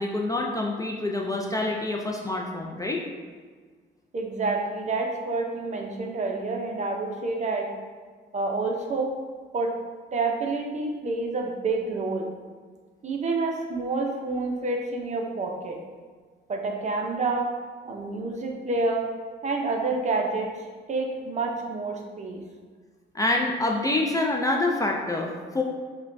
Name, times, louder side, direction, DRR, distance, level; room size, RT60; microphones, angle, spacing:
voice 1, 0.0-3.0 23.1-25.6, left 2 dB, 15° left, 0 dB, 0.4 m, -26 dB
voice 2, 4.1-7.7 8.3-9.1 9.5-9.7 10.1-12.3 13.0-15.8 16.5-17.5 17.8-19.1 19.4-20.5 20.9-22.4, right 3 dB, 35° right, 1 dB, 0.6 m, -28 dB
5.4 x 2.2 x 2.6 m, 1.5 s
cardioid pair, 90°, 20 cm